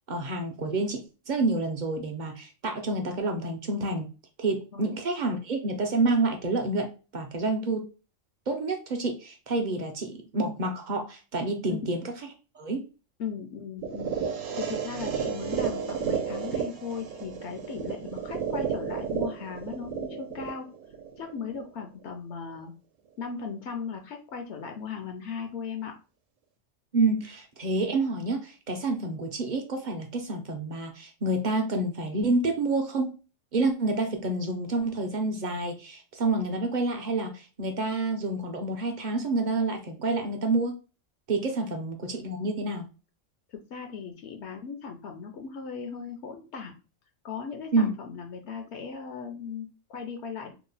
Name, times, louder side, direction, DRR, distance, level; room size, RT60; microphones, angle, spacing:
voice 1, 0.1-4.1 4.4-7.8 8.5-12.0 12.5-12.8 26.9-33.1 33.5-40.8 41.3-42.9 47.7-47.9, right 2 dB, 55° right, 4 dB, 0.5 m, -28 dB
voice 2, 13.2-14.2 14.5-20.7 21.1-22.7 23.2-25.9 43.5-46.7 47.2-50.5, left 6 dB, 70° left, 5 dB, 0.8 m, -37 dB
sound 1, 13.8-21.8, right 6 dB, 90° right, 1.0 m, -32 dB
2.9 x 2.1 x 3.9 m, 0.33 s
omnidirectional pair, 1.3 m